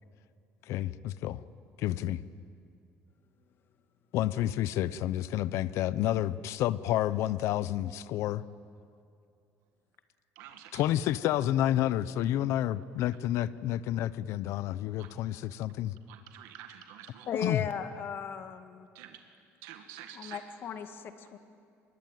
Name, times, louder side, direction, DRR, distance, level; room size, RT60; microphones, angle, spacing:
voice 1, 0.7-1.4 1.8-2.2 4.1-8.4 10.7-15.9 17.4-17.6, left 13 dB, 65° left, 16 dB, 0.8 m, -30 dB
voice 2, 10.4-10.8 15.0-15.1 16.1-17.3 18.9-19.2 19.6-20.4, right 11 dB, 85° right, 5 dB, 1.8 m, -48 dB
voice 3, 17.3-18.9 20.1-21.4, left 7 dB, 45° left, 8 dB, 2.0 m, -37 dB
25.0 x 21.5 x 9.2 m, 2.4 s
cardioid pair, 140°, 5 cm